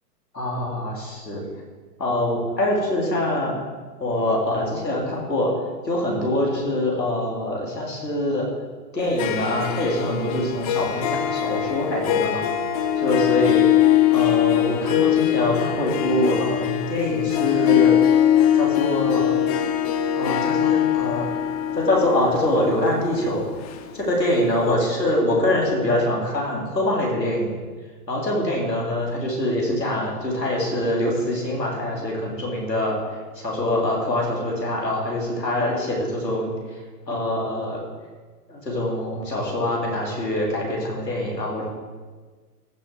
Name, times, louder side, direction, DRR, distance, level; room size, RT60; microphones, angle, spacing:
voice 1, 0.3-1.4 2.0-3.6 4.0-5.5 5.8-8.5 8.9-12.4 13.0-13.6 14.1-17.9 18.5-19.3 20.1-21.3 21.8-23.4 23.9-27.5 28.1-33.0 33.4-36.5 37.1-37.8 38.5-41.6, left 1 dB, 85° left, -3 dB, 3.7 m, -24 dB
Harp, 9.0-24.4, left 11 dB, 25° left, 0.6 m, -22 dB
14.5 x 6.8 x 4.7 m, 1.4 s
figure-of-eight pair, 115°, 48 cm